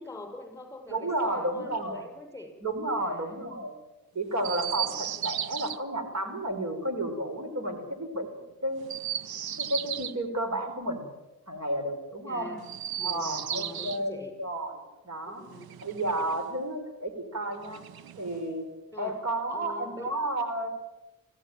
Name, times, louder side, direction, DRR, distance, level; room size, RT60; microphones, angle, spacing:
voice 1, 0.0-2.5 2.9-3.3 4.1-4.2 5.2-5.4 12.2-12.6 13.0-14.3 15.2-15.8 18.9-19.2 19.5-20.1, left 2 dB, 5° left, 4 dB, 6.3 m, -44 dB
voice 2, 0.9-2.0 2.6-3.7 4.1-8.3 8.6-8.8 9.6-11.1 11.5-12.5 13.0-14.8 15.0-15.5 15.8-17.8 18.2-18.6 19.0-20.7, right 1 dB, 50° right, 6 dB, 4.4 m, -32 dB
Chirp tweet, 4.4-5.8 8.8-10.2 12.6-14.0 15.4-16.5 17.6-18.5, right 10 dB, 85° right, 0.9 m, -35 dB
26.0 x 16.0 x 8.9 m, 1.1 s
wide cardioid pair, 110°, 36 cm